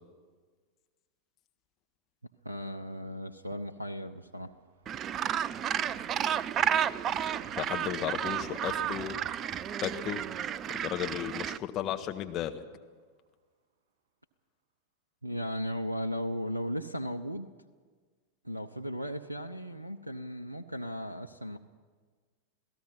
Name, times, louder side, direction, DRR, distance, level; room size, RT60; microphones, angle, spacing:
voice 1, 2.4-4.5 7.0-7.5 15.2-17.5 18.4-21.6, equal, 85° right, 11 dB, 0.7 m, -36 dB
sound 1, 4.5-12.9 13.3-13.4, right 6 dB, 60° right, 4.1 m, -54 dB
Gull seagull, 4.9-11.6, right 9 dB, 30° right, 0.5 m, -32 dB
voice 2, 7.6-9.2 9.8-10.2 10.8-12.6, left 11 dB, 35° left, 7 dB, 1.6 m, -34 dB
27.5 x 17.5 x 5.8 m, 1.5 s
figure-of-eight pair, 90°, 0 cm